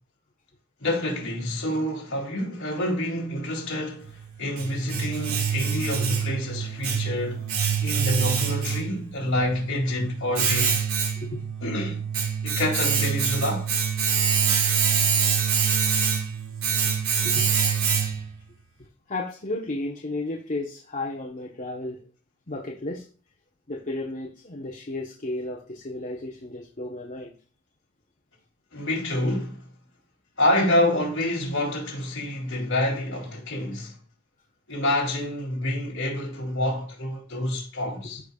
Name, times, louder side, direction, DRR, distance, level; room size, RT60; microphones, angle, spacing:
voice 1, 0.8-7.5 7.8-10.8 11.6-12.0 12.4-13.7 28.7-29.7 30.4-33.9 34.7-38.2, left 1 dB, 60° left, 3.3 m, -27 dB
Domestic sounds home sounds, 4.0-18.4, right 7 dB, 85° right, 1.8 m, -25 dB
voice 2, 19.1-22.0 22.5-23.0 23.7-27.3, left 2 dB, 35° left, 1.1 m, -33 dB
13.5 x 5.2 x 2.4 m
head